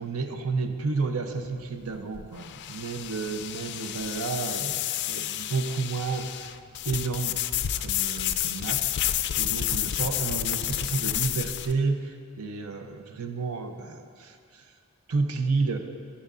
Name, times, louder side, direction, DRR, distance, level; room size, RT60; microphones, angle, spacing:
voice 1, 0.0-6.5 6.8-7.4 7.8-14.6 15.1-15.8, right 4 dB, 85° right, 6 dB, 0.7 m, -31 dB
sound 1, 1.4-11.7, left 12 dB, 55° left, 0.3 m, -30 dB
12.0 x 9.8 x 2.5 m, 2.2 s
head